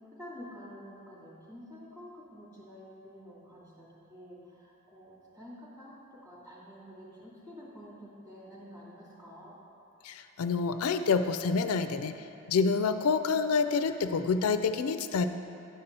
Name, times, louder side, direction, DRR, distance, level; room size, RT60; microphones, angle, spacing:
voice 1, 0.1-9.5, equal, 15° right, -8 dB, 2.3 m, -49 dB
voice 2, 10.0-12.2 12.5-15.3, left 5 dB, 85° left, 9 dB, 0.4 m, -27 dB
10.0 x 4.2 x 6.7 m, 2.6 s
head